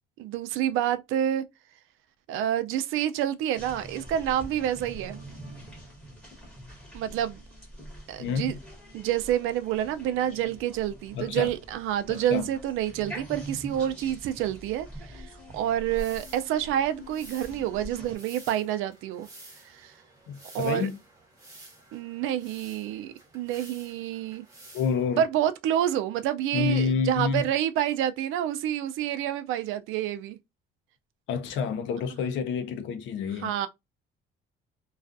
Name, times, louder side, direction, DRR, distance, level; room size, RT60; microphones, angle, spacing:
voice 1, 0.2-1.4 2.3-5.2 6.9-7.4 8.1-8.5 8.9-19.3 19.7-19.9 20.5-20.9 21.9-24.4 25.2-30.4 33.4-33.7, right 11 dB, 85° right, 0.4 m, -28 dB
sound 1, 3.5-18.1, right 1 dB, 5° left, 1.2 m, -44 dB
voice 2, 8.2-8.6 11.1-11.5 12.1-12.5 20.3-21.0 24.7-25.3 26.5-27.4 31.3-33.6, left 6 dB, 70° left, 0.5 m, -28 dB
sound 2, 15.9-25.3, right 2 dB, 15° right, 1.0 m, -51 dB
2.3 x 2.3 x 2.4 m
cardioid pair, 160°, 20 cm